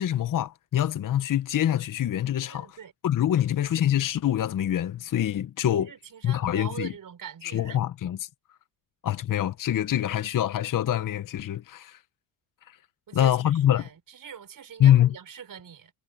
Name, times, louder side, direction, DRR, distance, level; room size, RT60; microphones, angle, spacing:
voice 1, 0.0-2.8 3.0-5.9 6.2-6.9 7.4-8.3 9.0-12.0 12.7-12.8 13.1-13.9 14.8-15.1, left 11 dB, 45° left, 1.0 m, -25 dB
voice 2, 2.5-2.9 3.5-3.7 5.8-7.8 13.1-15.9, right 8 dB, 45° right, 4.9 m, -43 dB
cardioid pair, 100°, 44 cm